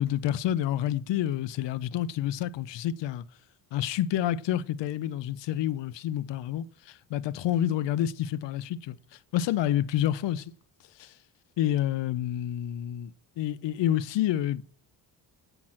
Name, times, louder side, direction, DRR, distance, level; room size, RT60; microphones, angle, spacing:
voice 1, 0.0-3.2 3.7-9.0 9.3-10.5 11.0-11.1 11.6-14.6, left 11 dB, 80° left, 0.7 m, -28 dB
9.0 x 6.0 x 7.3 m
cardioid pair, 105°, 43 cm